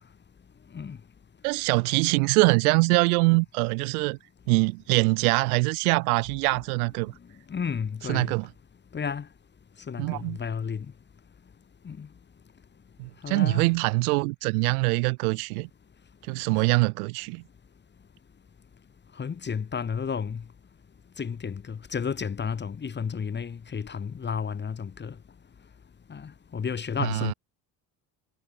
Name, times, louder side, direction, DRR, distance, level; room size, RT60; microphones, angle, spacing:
voice 1, 1.4-4.2 4.5-7.1 8.1-8.5 10.0-10.4 13.0-15.7 16.3-17.4 27.0-27.3, right 28 dB, 90° right, 1.0 m, -24 dB
voice 2, 7.5-8.3 8.9-9.3 9.9-10.9 11.8-12.1 13.2-13.7 16.5-16.7 19.2-20.4 21.2-25.1 26.1-27.3, left 6 dB, 25° left, 1.1 m, -32 dB
supercardioid pair, 85°, 43 cm